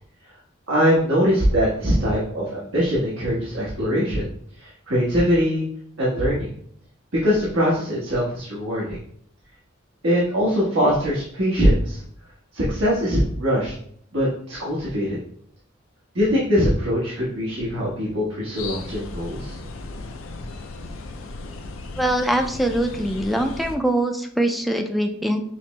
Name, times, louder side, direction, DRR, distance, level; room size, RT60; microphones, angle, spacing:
voice 1, 0.7-4.2 4.6-5.6 6.0-6.5 7.2-9.0 10.0-12.0 12.5-13.7 14.1-15.2 16.1-19.6, equal, 80° right, -7 dB, 1.2 m, -22 dB
sound 1, 18.6-23.8, left 2 dB, 90° left, 0.4 m, -36 dB
voice 2, 22.0-25.4, right 1 dB, ahead, 5 dB, 0.3 m, -23 dB
5.9 x 2.0 x 3.1 m, 0.63 s
head